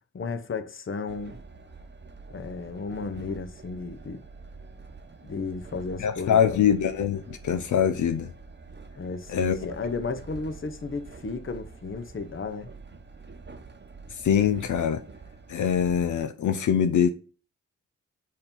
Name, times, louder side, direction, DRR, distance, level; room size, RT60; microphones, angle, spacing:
voice 1, 0.1-1.4 2.3-4.2 5.2-6.6 9.0-12.7, left 4 dB, 45° left, 0.9 m, -34 dB
Train, 1.1-16.3, right 4 dB, 35° right, 0.9 m, -46 dB
voice 2, 6.0-8.3 9.3-9.6 14.1-15.0 15.5-17.1, left 8 dB, 80° left, 0.6 m, -23 dB
6.6 x 2.8 x 5.4 m
cardioid pair, 55°, 29 cm